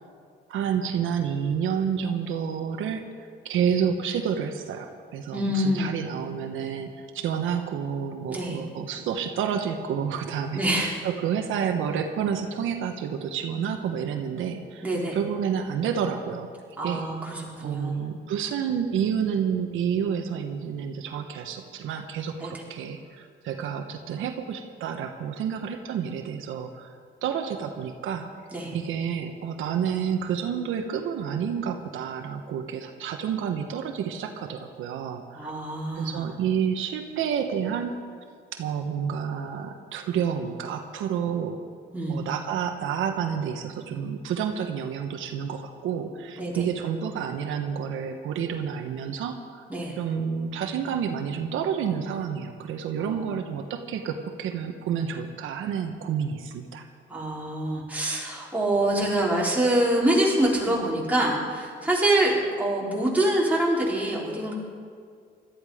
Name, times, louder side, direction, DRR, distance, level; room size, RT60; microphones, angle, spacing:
voice 1, 0.5-3.1 3.4-14.8 15.1-16.5 16.8-17.1 17.6-27.0 27.2-28.3 28.7-35.5 36.0-37.9 38.6-41.6 42.1-49.6 50.0-56.9, right 7 dB, 85° right, 5 dB, 1.2 m, -29 dB
voice 2, 5.3-5.9 8.3-8.6 10.5-11.0 14.8-15.2 16.8-18.0 22.4-22.5 28.5-28.7 35.3-36.2 41.9-42.2 46.4-46.6 49.7-50.0 53.0-53.3 57.1-64.5, right 1 dB, 10° right, -5 dB, 4.8 m, -25 dB
17.5 x 13.0 x 5.1 m, 2.1 s
cardioid pair, 90°, 20 cm